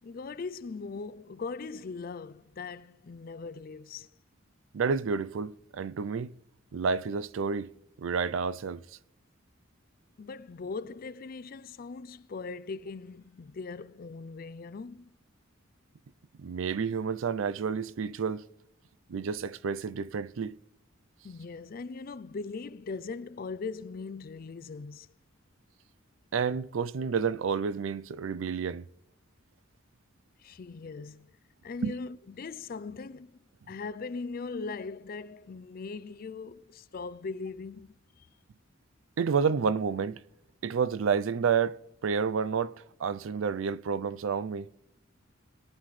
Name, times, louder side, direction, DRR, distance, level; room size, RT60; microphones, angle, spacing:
voice 1, 0.0-4.1 10.2-15.1 21.2-25.1 30.4-31.3 31.6-33.4 33.7-38.3, left 4 dB, 45° left, 0.4 m, -40 dB
voice 2, 4.7-6.3 6.7-7.7 8.0-8.8 16.4-18.4 19.1-20.6 26.3-28.9 31.8-31.9 39.2-40.2 40.6-41.8 42.0-42.7 43.0-44.7, right 6 dB, 75° right, 0.4 m, -30 dB
22.5 x 9.5 x 3.2 m
head